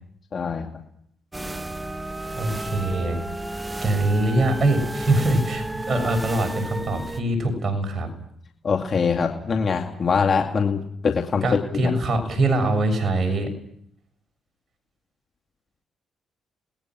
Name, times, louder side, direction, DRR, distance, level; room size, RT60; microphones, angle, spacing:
voice 1, 0.3-0.7 8.6-11.4 11.7-11.9, left 5 dB, 45° left, 3 dB, 2.4 m, -23 dB
sound 1, 1.3-7.2, right 1 dB, 15° right, 1.5 m, -32 dB
voice 2, 2.3-3.2 3.8-8.1 11.4-13.5, right 2 dB, 40° right, 5 dB, 6.7 m, -23 dB
29.5 x 20.0 x 6.2 m, 0.70 s
cardioid pair, 90°, 0 cm